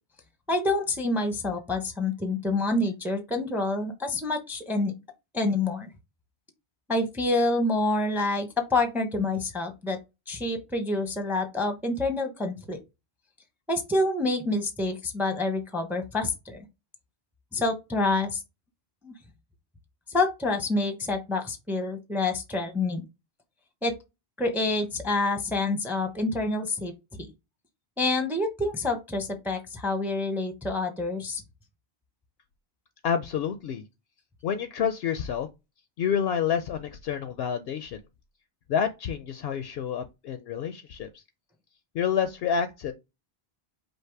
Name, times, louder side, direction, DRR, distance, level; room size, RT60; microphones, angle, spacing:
voice 1, 0.5-4.9 5.3-5.9 6.9-10.0 10.3-12.8 13.7-16.6 17.5-18.4 19.0-19.1 20.1-23.0 23.8-23.9 24.4-26.9 27.2-27.3 28.0-31.4, left 2 dB, ahead, 0.7 m, -27 dB
voice 2, 33.0-33.8 34.4-35.5 36.0-38.0 38.7-41.2 41.9-42.9, left 8 dB, 70° left, 0.8 m, -28 dB
5.3 x 2.1 x 4.5 m
omnidirectional pair, 1.1 m